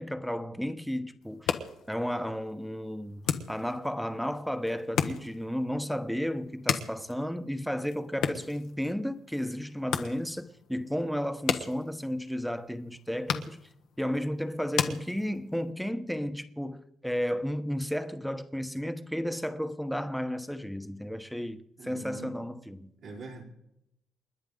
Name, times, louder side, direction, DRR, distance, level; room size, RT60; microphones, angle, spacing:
voice 1, 0.0-1.5 1.9-13.6 14.0-22.9, equal, ahead, 1.1 m, -33 dB
sound 1, 1.2-15.7, left 8 dB, 80° left, 1.2 m, -37 dB
voice 2, 21.8-22.4 23.0-23.4, right 3 dB, 70° right, 4.1 m, -43 dB
29.0 x 10.5 x 3.9 m
cardioid pair, 90°, 0 cm